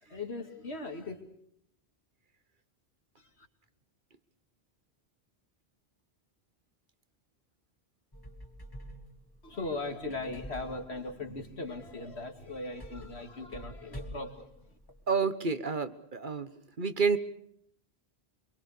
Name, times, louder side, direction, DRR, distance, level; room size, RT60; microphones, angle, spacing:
voice 1, 0.0-1.2 3.2-3.5 9.4-14.8, left 2 dB, 85° left, 5 dB, 2.8 m, -39 dB
sound 1, 8.1-15.1, equal, 20° left, 2.4 m, -48 dB
voice 2, 15.1-16.5 16.8-17.2, right 5 dB, 50° right, 12 dB, 1.4 m, -29 dB
25.5 x 23.5 x 6.7 m, 0.70 s
omnidirectional pair, 1.1 m